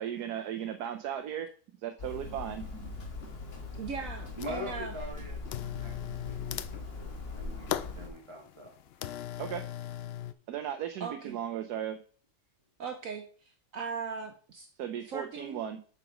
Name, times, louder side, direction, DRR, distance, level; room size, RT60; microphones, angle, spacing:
voice 1, 0.0-1.5 1.8-2.9 9.4-9.6 10.5-12.0 14.8-15.8, right 10 dB, 90° right, 6 dB, 1.3 m, -36 dB
Hammer, 2.0-8.1, left 3 dB, 40° left, 1.5 m, -41 dB
sound 1, 2.6-2.7 3.2-3.8 4.0-4.8 5.5-10.3, left 11 dB, 85° left, 0.5 m, -39 dB
voice 2, 3.8-4.9 11.0-11.4 12.8-14.7 15.0-15.6, right 5 dB, 65° right, 6 dB, 1.2 m, -39 dB
voice 3, 4.4-5.9 6.2-7.7 7.9-8.8, left 1 dB, 20° right, 0 dB, 1.5 m, -43 dB
7.8 x 5.1 x 5.0 m, 0.42 s
omnidirectional pair, 1.6 m